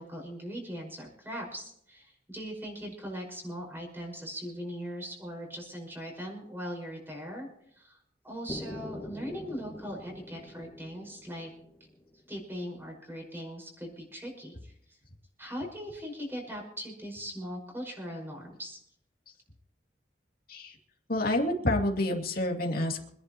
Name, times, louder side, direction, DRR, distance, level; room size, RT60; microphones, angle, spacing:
voice 1, 0.0-8.0 8.2-11.5 12.3-14.7 15.4-18.8, equal, 15° right, 0 dB, 5.5 m, -40 dB
sound 1, 8.5-12.4, left 1 dB, 15° left, 1.0 m, -44 dB
voice 2, 21.1-23.1, left 1 dB, 55° left, 1 dB, 2.5 m, -28 dB
26.5 x 11.0 x 3.0 m, 0.71 s
head